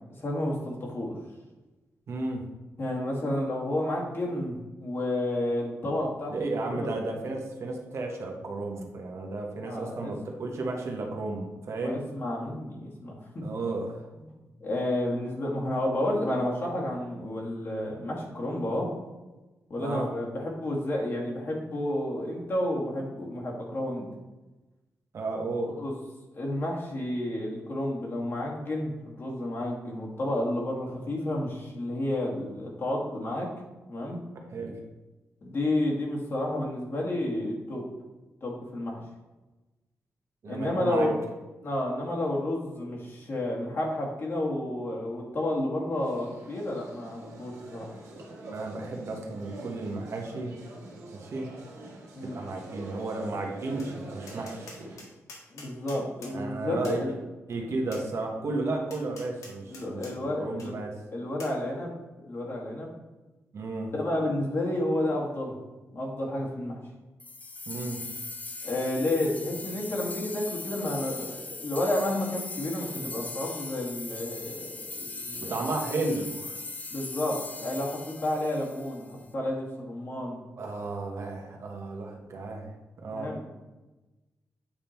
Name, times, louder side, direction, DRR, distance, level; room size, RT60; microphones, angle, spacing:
voice 1, 0.2-1.1 2.8-6.3 6.6-6.9 9.6-10.1 11.8-13.4 14.6-18.9 19.7-24.1 25.8-25.9 26.3-33.5 33.9-34.2 35.4-37.8 38.4-39.0 40.5-41.2 41.6-48.0 52.1-52.4 55.5-57.1 59.7-60.7 61.1-61.9 62.2-62.9 63.9-65.6 65.9-66.8 68.6-75.6 76.9-80.4 83.1-83.5, left 1 dB, 45° left, -2 dB, 2.0 m, -31 dB
voice 2, 2.1-2.4 6.3-12.0 13.4-14.0 19.8-20.1 25.1-25.8 34.5-34.8 40.4-41.1 48.5-50.6 51.1-51.5 52.2-54.8 56.3-57.0 57.5-60.9 63.5-63.9 67.7-68.0 75.4-76.6 80.6-83.3, right 2 dB, 60° right, 1 dB, 1.2 m, -33 dB
sound 1, 45.9-55.1, right 2 dB, 90° right, 1.5 m, -45 dB
Tap, 53.8-53.9 54.3-56.4 56.8-57.0 57.9-58.1 58.9-60.1 60.6-60.7 61.4-61.6, left 3 dB, 80° left, 1.5 m, -46 dB
sound 2, 67.2-79.2, left 3 dB, 30° left, 0.5 m, -39 dB
8.6 x 3.7 x 4.4 m, 1.1 s
cardioid pair, 105°, 5 cm